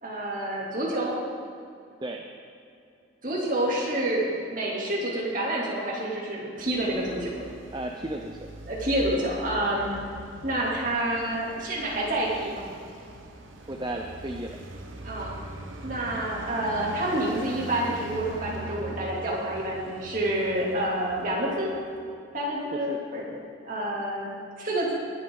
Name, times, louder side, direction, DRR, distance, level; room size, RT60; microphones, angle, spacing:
voice 1, 0.0-1.2 3.2-7.4 8.7-9.9 10.4-12.6 15.0-15.4 15.8-21.8 22.3-23.4 23.6-24.9, right 1 dB, 40° right, -5 dB, 2.9 m, -28 dB
Traffic noise roadway noise, 6.6-22.1, right 2 dB, 75° right, 1.1 m, -42 dB
voice 2, 7.7-8.5 13.7-14.6 22.7-23.0, right 1 dB, 20° right, 2 dB, 0.6 m, -34 dB
21.0 x 8.4 x 3.9 m, 2.5 s
head